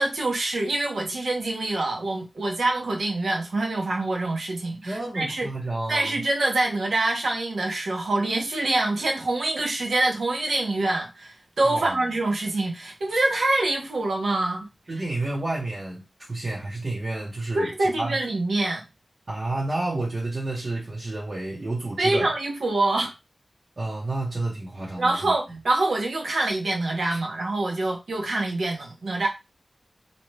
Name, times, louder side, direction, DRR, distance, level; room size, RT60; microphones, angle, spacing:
voice 1, 0.0-5.5 5.9-14.7 17.5-18.8 22.0-23.1 25.0-29.3, right 2 dB, 85° right, 0.8 m, -25 dB
voice 2, 4.8-6.1 11.7-12.1 14.9-18.2 19.3-22.3 23.8-25.6 27.1-27.2, right 2 dB, 50° right, 0.8 m, -30 dB
2.7 x 2.2 x 3.1 m
wide cardioid pair, 85°, 0 cm